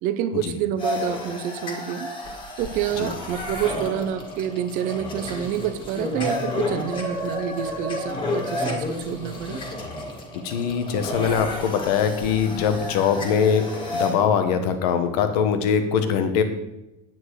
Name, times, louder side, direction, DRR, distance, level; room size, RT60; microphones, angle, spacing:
voice 1, 0.0-2.1 2.6-9.6, right 10 dB, 45° right, 11 dB, 0.7 m, -28 dB
sound 1, 0.8-14.1, left 2 dB, 25° left, 1.9 m, -31 dB
voice 2, 10.3-13.7 13.9-16.4, left 7 dB, 85° left, 8 dB, 1.4 m, -22 dB
9.3 x 9.0 x 4.9 m, 0.92 s
cardioid pair, 175°, 19 cm